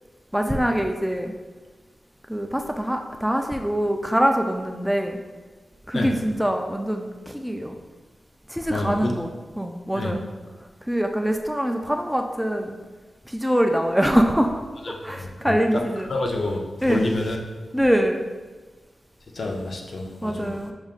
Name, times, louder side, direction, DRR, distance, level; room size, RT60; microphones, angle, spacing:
voice 1, 0.3-1.3 2.3-5.2 5.9-7.8 8.5-10.3 10.8-12.8 13.3-14.5 14.9-16.1 16.8-17.1 17.7-18.2 20.2-20.7, equal, 5° right, 4 dB, 0.3 m, -24 dB
voice 2, 8.7-9.1 10.0-10.1 14.9-15.0 15.5-15.6 16.1-16.6 16.9-17.4 19.4-20.5, left 2 dB, 60° left, 1 dB, 0.6 m, -27 dB
6.1 x 3.6 x 2.4 m, 1.3 s
cardioid pair, 75°, 0 cm